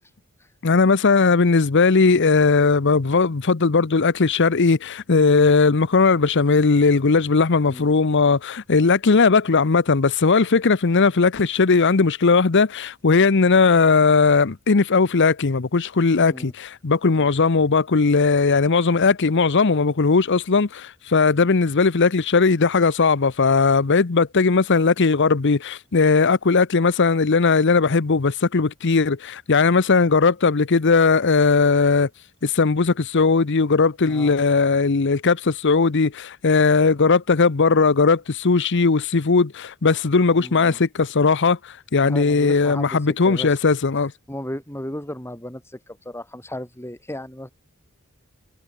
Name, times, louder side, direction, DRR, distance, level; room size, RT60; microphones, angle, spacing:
voice 1, 0.6-32.1 32.4-44.1, left 4 dB, 55° left, 0.8 m, -18 dB
voice 2, 40.4-40.8 42.0-43.6 44.3-47.5, left 1 dB, 10° left, 7.5 m, -35 dB
head